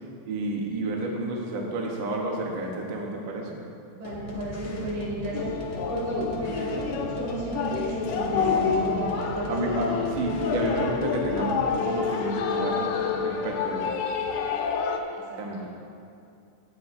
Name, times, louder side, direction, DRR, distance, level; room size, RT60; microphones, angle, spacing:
voice 1, 0.2-3.6 8.3-9.1 9.5-13.8 15.4-15.7, right 1 dB, 60° right, 0 dB, 1.3 m, -31 dB
voice 2, 3.9-10.0 15.1-15.4, right 1 dB, 75° right, -5 dB, 4.0 m, -33 dB
sound 1, 4.0-11.7, equal, 65° left, 1.1 m, -40 dB
sound 2, 5.3-15.0, left 6 dB, 85° left, 2.2 m, -28 dB
17.0 x 8.1 x 2.6 m, 2.5 s
omnidirectional pair, 3.5 m